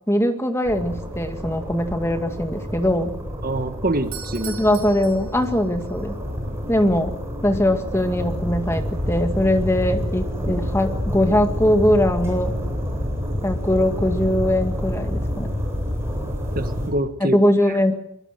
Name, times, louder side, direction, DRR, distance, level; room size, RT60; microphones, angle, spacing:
voice 1, 0.1-3.1 4.5-6.1 6.7-7.1 7.4-12.5 13.4-15.5 17.2-17.9, left 1 dB, 10° left, 6 dB, 2.1 m, -21 dB
sound 1, 0.6-16.9, equal, 10° right, 7.6 m, -28 dB
voice 2, 3.4-4.6 6.4-6.6 16.5-17.4, right 1 dB, 40° right, 9 dB, 1.6 m, -25 dB
Doorbell, 4.0-5.9, right 9 dB, 80° right, 6.8 m, -39 dB
24.0 x 23.0 x 7.7 m, 0.72 s
head